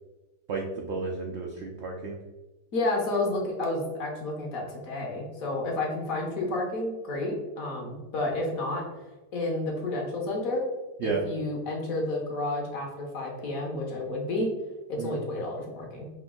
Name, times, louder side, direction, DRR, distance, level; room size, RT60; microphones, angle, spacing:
voice 1, 0.5-2.2 11.0-11.2 15.0-15.2, right 4 dB, 80° right, 0 dB, 0.6 m, -32 dB
voice 2, 2.7-8.8 9.3-10.6 11.0-14.5 14.9-16.1, left 2 dB, 60° left, 0 dB, 1.2 m, -30 dB
5.1 x 2.6 x 3.7 m, 1.1 s
omnidirectional pair, 1.8 m